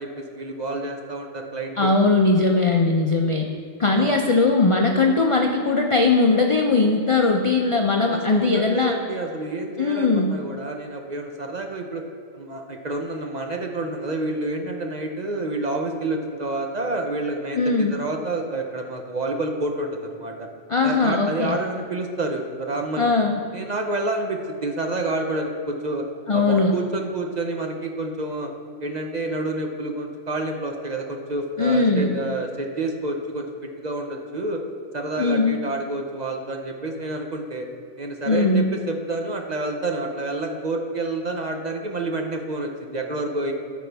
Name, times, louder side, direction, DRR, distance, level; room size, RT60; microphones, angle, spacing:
voice 1, 0.0-1.9 3.9-4.2 8.1-12.0 12.3-20.5 20.8-23.1 23.5-26.1 26.3-28.5 28.8-33.5 33.8-34.6 34.9-37.7 38.0-43.5, right 2 dB, 45° right, 3 dB, 0.6 m, -28 dB
voice 2, 1.8-3.5 3.8-9.0 9.8-10.4 17.5-18.0 20.7-21.6 23.0-23.4 26.3-26.8 31.6-32.1 35.2-35.6 38.3-38.7, left 3 dB, 55° left, 2 dB, 0.3 m, -20 dB
13.5 x 5.1 x 3.4 m, 2.3 s
omnidirectional pair, 1.3 m